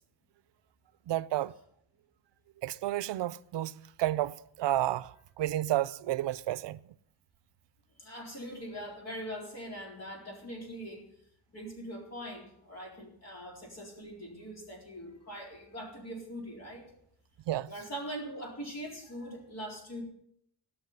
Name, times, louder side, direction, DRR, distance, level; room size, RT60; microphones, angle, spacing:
voice 1, 1.1-1.5 2.6-3.7 4.0-6.8 17.5-17.7, right 14 dB, 80° right, 0.6 m, -31 dB
voice 2, 8.0-11.1 11.5-16.9 17.7-20.0, equal, 35° left, 4.1 m, -42 dB
17.5 x 6.3 x 9.4 m
wide cardioid pair, 175°, 42 cm